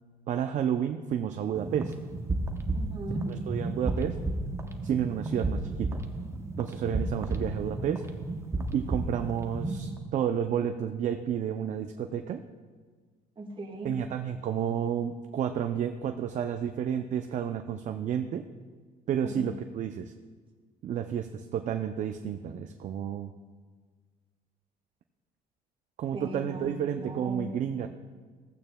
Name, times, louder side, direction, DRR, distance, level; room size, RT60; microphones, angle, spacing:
voice 1, 0.3-1.9 3.3-4.2 4.8-6.0 6.6-8.0 8.7-12.4 13.8-18.5 19.1-20.1 20.8-23.3 26.0-27.9, right 9 dB, 50° right, 7 dB, 0.4 m, -31 dB
sound 1, 1.5-10.0, right 2 dB, 15° right, 0.7 m, -33 dB
voice 2, 2.7-3.3 13.4-13.9 19.2-19.4 26.1-27.8, right 1 dB, 30° right, 2 dB, 1.5 m, -39 dB
15.0 x 8.7 x 2.2 m, 1.5 s
cardioid pair, 110°, 17 cm